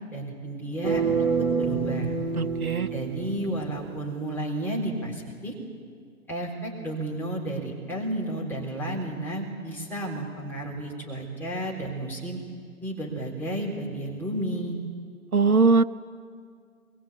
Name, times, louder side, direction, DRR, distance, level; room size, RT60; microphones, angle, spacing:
voice 1, 0.1-1.0 1.4-2.1 2.9-5.5 6.3-12.4 12.8-14.8, right 1 dB, 5° left, -4 dB, 3.9 m, -32 dB
sound 1, 0.8-3.9, right 5 dB, 10° right, 2.5 m, -27 dB
voice 2, 2.4-2.9 15.3-15.8, right 4 dB, 80° right, 11 dB, 1.0 m, -20 dB
23.0 x 22.5 x 8.5 m, 2.1 s
figure-of-eight pair, 130°, 43 cm